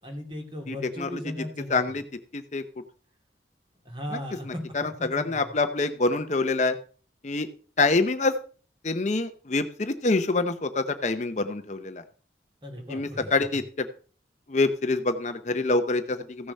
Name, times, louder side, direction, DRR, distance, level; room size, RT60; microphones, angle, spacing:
voice 1, 0.0-2.0 3.8-4.6 5.1-5.6 12.6-13.3, equal, 25° right, 3 dB, 2.8 m, -37 dB
voice 2, 0.7-1.2 1.7-2.0 2.3-2.6 4.5-6.8 7.2-7.5 7.8-8.3 8.8-12.0 12.9-13.6 14.5-16.5, left 3 dB, 40° left, 9 dB, 0.7 m, -26 dB
15.0 x 6.6 x 5.4 m, 0.41 s
head